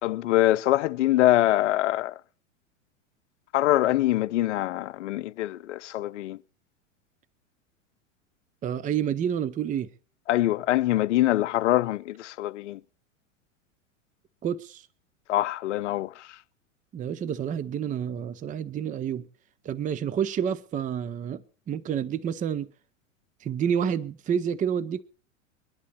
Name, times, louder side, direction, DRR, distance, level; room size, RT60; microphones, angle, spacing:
voice 1, 0.0-2.1 3.5-6.4 10.3-12.8 15.3-16.3, left 15 dB, 60° left, 0.7 m, -24 dB
voice 2, 8.6-9.9 14.4-14.8 16.9-19.3 19.6-21.4 21.7-22.7 23.4-25.0, right 8 dB, 20° right, 0.7 m, -29 dB
22.5 x 11.0 x 4.4 m
hypercardioid pair, 95°, 40 cm